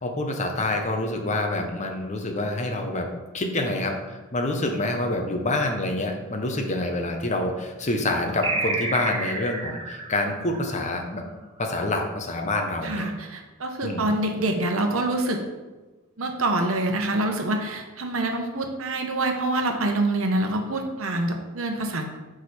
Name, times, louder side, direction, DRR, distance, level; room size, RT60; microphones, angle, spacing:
voice 1, 0.0-3.1 3.3-11.2 11.6-13.1 13.8-14.0, left 2 dB, 35° left, 3 dB, 0.8 m, -27 dB
sound 1, 8.4-11.4, right 3 dB, 25° right, 1.0 m, -30 dB
voice 2, 12.8-15.4 16.2-22.2, right 2 dB, 65° right, 4 dB, 1.0 m, -26 dB
6.2 x 4.9 x 4.2 m, 1.2 s
head